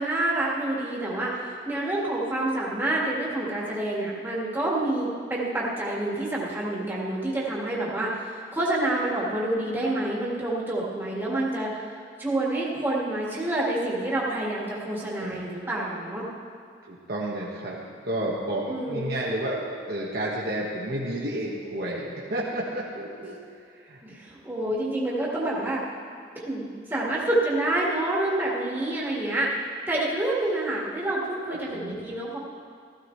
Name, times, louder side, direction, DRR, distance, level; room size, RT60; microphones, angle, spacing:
voice 1, 0.0-11.7 12.2-16.2 18.7-19.1 24.0-25.8 26.4-29.5 29.9-32.4, right 1 dB, 10° right, -6 dB, 1.9 m, -28 dB
voice 2, 16.9-23.4 23.7-24.0 31.5-32.0, right 1 dB, 55° right, -5 dB, 1.3 m, -31 dB
15.5 x 14.0 x 3.2 m, 2.2 s
head